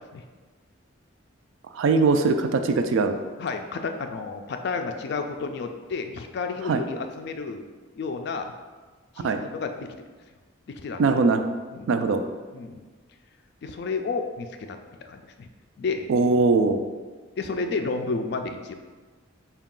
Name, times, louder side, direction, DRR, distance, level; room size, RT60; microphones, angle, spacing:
voice 1, 1.7-3.2 6.6-6.8 9.2-9.4 11.0-11.5 11.9-12.2 16.1-16.8, right 4 dB, 70° right, 7 dB, 0.3 m, -21 dB
voice 2, 3.4-7.7 8.0-8.5 9.2-10.0 10.7-11.0 11.7-11.9 12.5-12.8 13.6-15.5 15.8-16.1 17.4-18.7, left 4 dB, 55° left, 6 dB, 0.3 m, -31 dB
4.6 x 2.3 x 3.7 m, 1.4 s
head